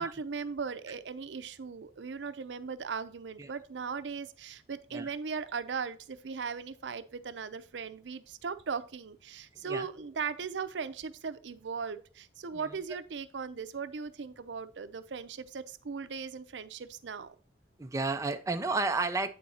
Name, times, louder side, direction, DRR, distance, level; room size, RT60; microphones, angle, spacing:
voice 1, 0.0-17.3, right 5 dB, 85° right, 0.6 m, -38 dB
voice 2, 17.8-19.3, right 3 dB, 20° right, 0.5 m, -31 dB
8.5 x 4.2 x 3.9 m
head